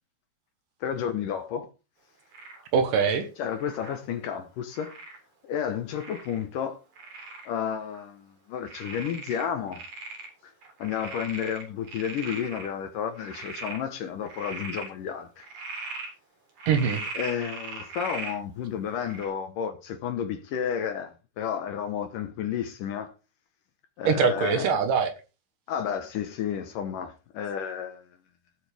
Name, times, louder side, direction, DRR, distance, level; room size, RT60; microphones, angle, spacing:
voice 1, 0.8-1.7 3.4-4.9 5.4-6.8 7.5-9.8 10.4-10.5 10.8-15.5 17.1-23.1 24.0-24.7 25.7-28.0, left 8 dB, 65° left, 2.4 m, -31 dB
Frog, 2.3-2.7 3.6-4.0 4.7-5.2 6.0-6.4 7.0-7.5 7.9-8.0 8.7-10.3 10.6-12.7 13.2-13.8 14.2-14.9 15.4-16.1 16.6-18.4 19.0-19.3, right 3 dB, 45° right, 5.1 m, -39 dB
voice 2, 2.7-3.3 16.7-17.0 24.0-25.1, right 6 dB, 65° right, 2.6 m, -23 dB
18.0 x 8.1 x 3.4 m
omnidirectional pair, 4.6 m